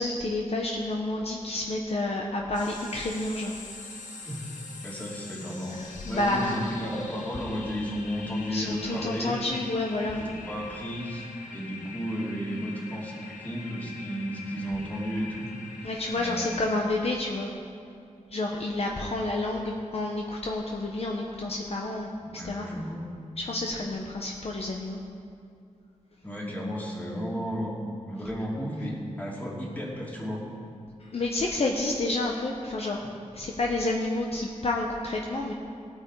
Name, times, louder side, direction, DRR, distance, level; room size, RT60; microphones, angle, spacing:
voice 1, 0.0-3.6 5.7-6.6 8.5-10.2 15.8-17.5 18.3-22.1 22.4-22.7 23.4-25.0 31.1-33.0 33.3-35.5, left 2 dB, 50° left, 0 dB, 1.0 m, -29 dB
sound 1, 2.5-16.8, left 4 dB, 85° left, 1.3 m, -44 dB
voice 2, 4.8-5.8 6.1-9.4 10.1-15.5 16.2-16.4 22.2-23.1 26.2-27.8 28.1-30.4, equal, 10° left, -5 dB, 2.8 m, -33 dB
18.0 x 8.8 x 4.7 m, 2.4 s
wide cardioid pair, 130°, 13 cm